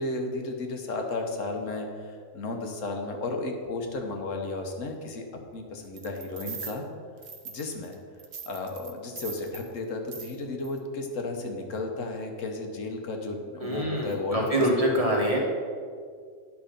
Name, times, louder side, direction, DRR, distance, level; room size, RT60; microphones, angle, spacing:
voice 1, 0.0-5.3 5.5-6.9 7.4-8.0 8.5-14.7 14.9-15.0, left 2 dB, 75° left, 3 dB, 1.4 m, -33 dB
sound 1, 6.0-6.8 7.2-7.9 8.2-9.7 10.1-10.4 10.6-10.8, right 6 dB, 55° right, 1.0 m, -41 dB
voice 2, 13.6-15.4, right 1 dB, 30° right, -2 dB, 1.5 m, -25 dB
9.8 x 5.8 x 5.2 m, 2.1 s
omnidirectional pair, 1.3 m